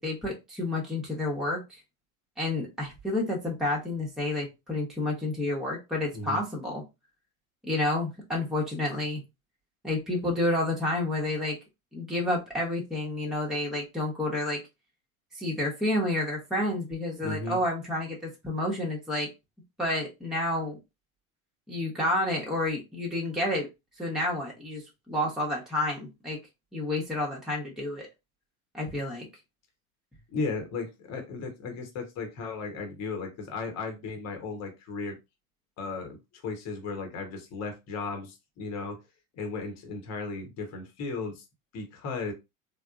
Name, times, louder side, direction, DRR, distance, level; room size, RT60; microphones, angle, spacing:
voice 1, 0.0-1.8 2.4-6.8 7.6-9.2 9.8-11.6 11.9-14.6 15.3-19.3 19.8-20.8 21.7-23.7 24.0-24.8 25.1-26.4 26.7-28.1 28.7-29.3, left 1 dB, ahead, -2 dB, 1.0 m, -30 dB
voice 2, 17.2-17.6 30.3-35.2 35.8-36.2 36.4-39.0 39.3-41.4 41.7-42.3, left 3 dB, 35° left, 4 dB, 1.1 m, -35 dB
3.4 x 2.2 x 2.5 m, 0.24 s
hypercardioid pair, 85°, 43 cm